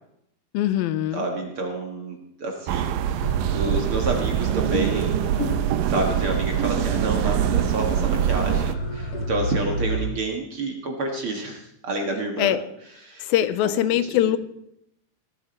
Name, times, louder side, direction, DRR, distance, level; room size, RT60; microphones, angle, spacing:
voice 1, 0.5-1.3 12.4-12.6 13.2-14.4, left 12 dB, 85° left, 14 dB, 2.5 m, -22 dB
voice 2, 1.1-5.5 5.9-12.6 13.0-13.2 13.6-14.3, right 2 dB, 45° right, 2 dB, 2.1 m, -29 dB
sound 1, 2.7-8.7, right 11 dB, 75° right, 2.3 m, -24 dB
sound 2, 3.2-10.0, equal, 60° left, 4.5 m, -31 dB
18.5 x 11.5 x 4.4 m, 0.76 s
omnidirectional pair, 4.2 m